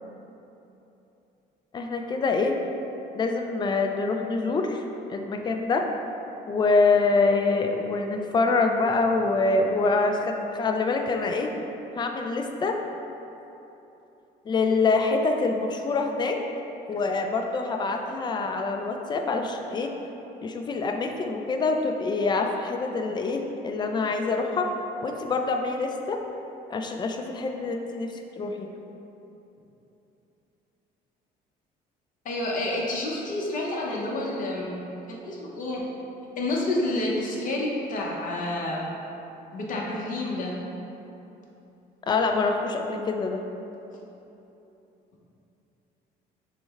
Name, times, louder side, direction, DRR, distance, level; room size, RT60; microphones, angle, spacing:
voice 1, 1.7-2.6 3.1-5.9 6.5-11.5 11.9-12.8 14.5-16.4 16.9-19.9 20.4-24.7 25.0-26.2 26.7-28.7 42.1-43.4, left 3 dB, 25° left, 4 dB, 0.4 m, -25 dB
voice 2, 32.2-34.8 35.1-35.8 36.4-38.9 39.5-40.6, left 1 dB, 50° left, -3 dB, 0.8 m, -29 dB
6.2 x 2.1 x 3.5 m, 3.0 s
cardioid pair, 110°, 17 cm